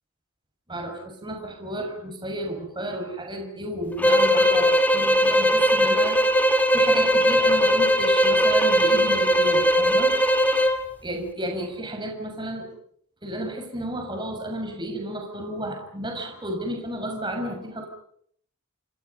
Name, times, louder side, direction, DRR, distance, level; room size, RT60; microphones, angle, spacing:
voice 1, 0.7-6.2 6.7-10.1 11.0-12.7 13.2-17.9, right 1 dB, 20° right, 2 dB, 6.7 m, -32 dB
sound 1, 4.0-10.8, equal, 5° left, 2.5 m, -19 dB
29.0 x 26.0 x 5.6 m, 0.65 s
head